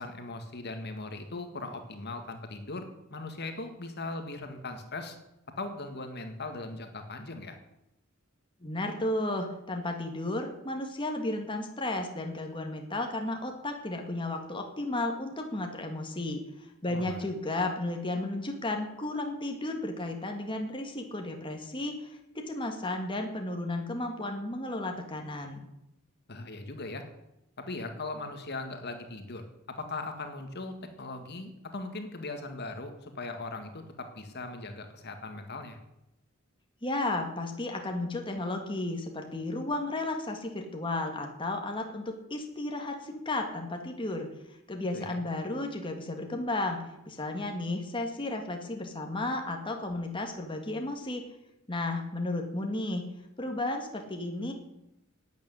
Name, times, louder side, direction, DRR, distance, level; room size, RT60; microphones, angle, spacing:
voice 1, 0.0-5.2 5.6-7.6 16.9-17.2 26.3-27.0 27.6-35.8 44.9-45.2, left 2 dB, 50° left, 6 dB, 2.0 m, -39 dB
voice 2, 8.6-22.1 22.3-25.7 36.8-51.2 51.7-53.0 53.4-54.5, left 2 dB, 25° left, 3 dB, 1.9 m, -33 dB
12.0 x 9.4 x 9.7 m, 0.87 s
head